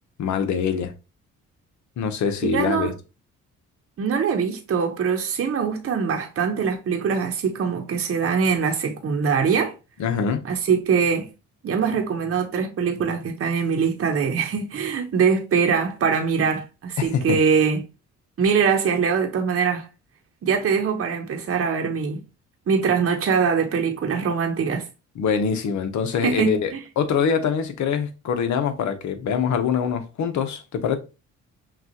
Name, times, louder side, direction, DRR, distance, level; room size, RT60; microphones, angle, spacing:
voice 1, 0.2-0.9 2.0-2.9 10.0-10.4 17.0-17.4 25.2-31.0, left 6 dB, 70° left, 0.9 m, -24 dB
voice 2, 2.5-2.9 4.0-9.7 10.4-11.3 11.6-17.8 18.4-19.9 20.4-22.2 22.7-24.9 26.2-26.8, right 6 dB, 45° right, 0.8 m, -23 dB
5.9 x 2.4 x 2.9 m
cardioid pair, 90°, 30 cm